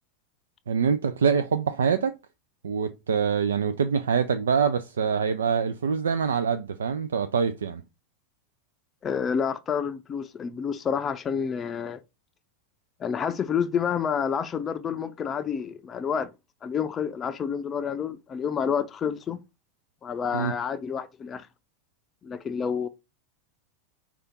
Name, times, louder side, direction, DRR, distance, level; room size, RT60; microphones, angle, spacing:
voice 1, 0.7-2.1 2.6-7.8 20.3-20.5, right 6 dB, 80° right, 0.3 m, -25 dB
voice 2, 9.0-12.0 13.0-16.3 16.6-19.4 20.0-21.5 22.2-22.9, left 7 dB, 30° left, 0.5 m, -29 dB
4.9 x 2.4 x 4.2 m
hypercardioid pair, 90°, 0 cm